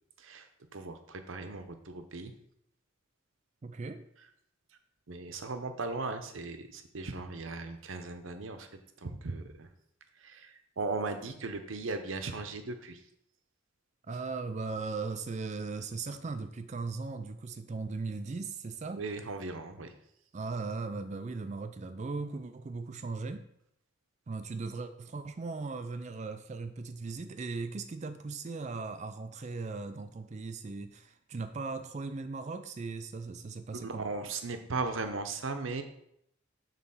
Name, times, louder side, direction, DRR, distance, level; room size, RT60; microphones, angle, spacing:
voice 1, 0.7-2.3 5.1-8.7 9.0-9.7 10.2-13.0 18.9-19.9 33.7-35.8, right 3 dB, 75° right, 8 dB, 0.8 m, -37 dB
voice 2, 3.6-4.1 14.1-19.0 20.3-23.5 24.3-34.1, right 4 dB, 35° right, 9 dB, 0.4 m, -38 dB
6.6 x 4.0 x 5.6 m, 0.74 s
head